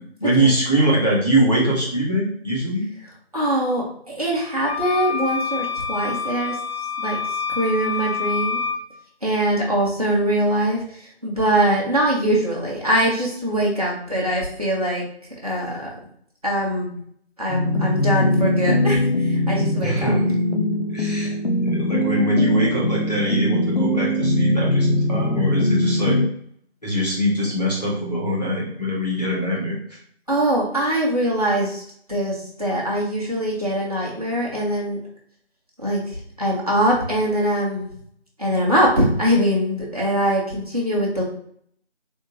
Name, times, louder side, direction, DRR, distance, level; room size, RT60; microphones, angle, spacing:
voice 1, 0.2-2.8 19.8-20.4 20.9-26.2 26.8-29.8, equal, 35° left, -6 dB, 1.2 m, -22 dB
voice 2, 3.3-6.5 7.0-7.2 7.5-8.6 9.2-10.8 11.2-15.0 15.4-15.9 16.4-16.9 17.4-20.2 30.3-31.8 32.1-35.0 35.8-37.9 38.4-41.2, right 1 dB, 35° right, -4 dB, 1.0 m, -22 dB
sound 1, 4.6-8.8, left 6 dB, 60° left, 0.9 m, -27 dB
sound 2, 17.5-26.3, left 1 dB, 90° left, 0.7 m, -21 dB
3.6 x 3.4 x 2.8 m, 0.65 s
figure-of-eight pair, 175°, 33 cm